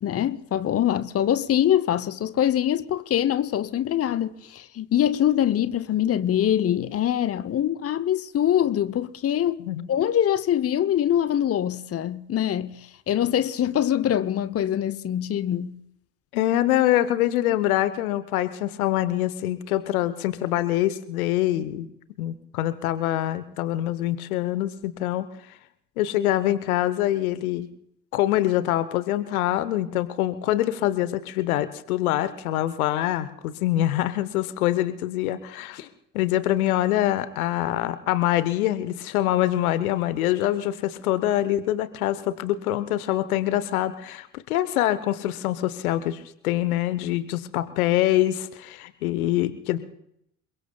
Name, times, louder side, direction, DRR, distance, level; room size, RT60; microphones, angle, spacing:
voice 1, 0.0-15.8, left 10 dB, 35° left, 0.8 m, -24 dB
voice 2, 16.3-21.9 22.2-25.3 26.0-27.7 28.1-35.9 36.1-49.8, left 14 dB, 75° left, 1.0 m, -25 dB
28.0 x 22.0 x 2.3 m
figure-of-eight pair, 50°, 44 cm